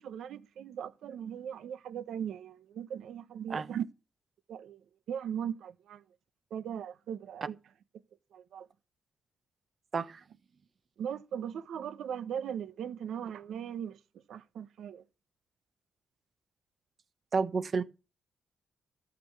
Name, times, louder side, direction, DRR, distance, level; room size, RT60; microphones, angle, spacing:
voice 1, 0.0-3.8 4.5-6.0 6.5-7.6 8.3-8.7 11.0-14.0 14.3-15.0, right 8 dB, 80° right, 1.0 m, -39 dB
voice 2, 17.3-17.8, right 5 dB, 45° right, 1.1 m, -30 dB
13.5 x 6.1 x 8.4 m
cardioid pair, 100°, 0 cm